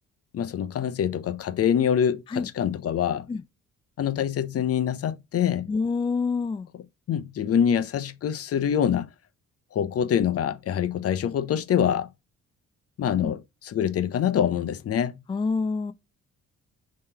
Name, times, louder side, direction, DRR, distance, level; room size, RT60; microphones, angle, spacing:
voice 1, 0.3-3.3 4.0-5.7 7.1-9.1 9.7-12.1 13.0-15.2, left 9 dB, 50° left, 0.7 m, -25 dB
voice 2, 5.7-6.7 13.2-13.3 15.3-15.9, left 4 dB, 20° left, 0.3 m, -27 dB
3.6 x 3.1 x 4.2 m
cardioid pair, 90°, 30 cm